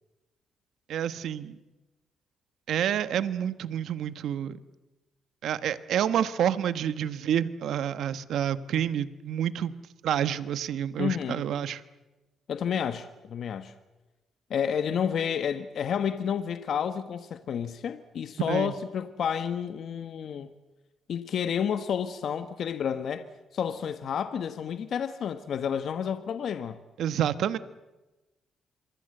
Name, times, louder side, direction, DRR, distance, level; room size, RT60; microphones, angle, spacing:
voice 1, 0.9-1.6 2.7-4.6 5.4-9.7 10.0-11.8 18.5-18.7 27.0-27.6, right 9 dB, 75° right, 1.2 m, -28 dB
voice 2, 11.0-11.4 12.5-13.7 14.5-20.5 21.1-26.8, left 8 dB, 60° left, 1.3 m, -30 dB
26.0 x 23.5 x 7.9 m
cardioid pair, 90°, 0 cm